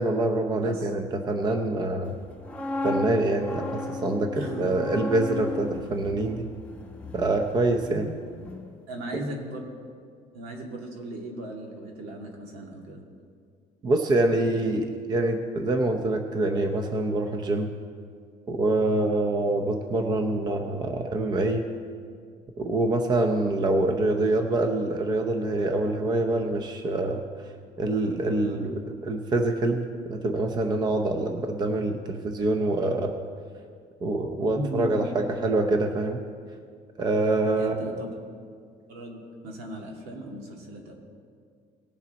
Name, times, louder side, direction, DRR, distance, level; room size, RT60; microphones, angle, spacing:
voice 1, 0.0-2.1 2.8-6.5 7.1-8.1 13.8-17.7 18.5-21.6 22.6-27.2 27.8-33.2 34.0-36.2 37.0-37.8, right 2 dB, 25° right, 5 dB, 0.6 m, -25 dB
sound 1, 2.2-8.1 8.4-8.7, left 2 dB, 10° left, 0.8 m, -35 dB
voice 2, 4.3-5.0 7.9-8.1 8.9-9.6 10.3-13.0 14.6-14.7 18.8-19.1 28.4-28.7 34.4-35.3 37.4-38.2 38.9-40.9, right 1 dB, 85° right, 0 dB, 2.1 m, -37 dB
19.0 x 7.1 x 4.1 m, 2.1 s
cardioid pair, 165°, 15 cm